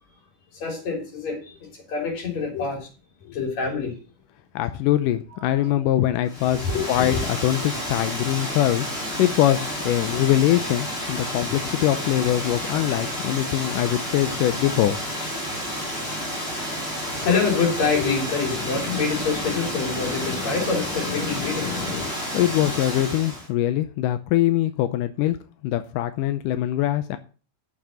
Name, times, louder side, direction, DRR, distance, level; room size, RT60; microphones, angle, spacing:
voice 1, 0.5-2.9 3.3-3.9 5.4-6.0 6.4-7.2 17.0-22.1, left 5 dB, 55° left, 4.6 m, -26 dB
voice 2, 4.6-7.2 7.4-8.9 9.2-15.0 22.3-25.4 25.6-27.2, left 13 dB, 90° left, 2.3 m, -22 dB
Water, 6.3-23.5, equal, 20° left, 2.6 m, -30 dB
8.4 x 7.2 x 7.6 m
omnidirectional pair, 3.7 m